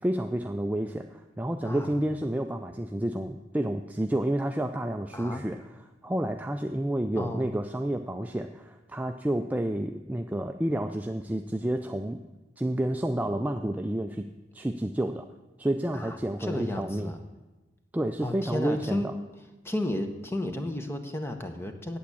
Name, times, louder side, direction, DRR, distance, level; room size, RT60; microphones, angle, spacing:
voice 1, 0.0-5.6 6.0-12.2 12.6-14.3 14.5-15.3 15.6-17.1 17.9-19.1, right 1 dB, 10° right, 6 dB, 0.3 m, -30 dB
voice 2, 1.6-1.9 5.1-5.4 7.2-7.5 15.9-17.2 18.2-19.1 19.6-22.0, left 1 dB, 15° left, 6 dB, 0.9 m, -33 dB
8.6 x 8.4 x 8.3 m, 1.1 s
head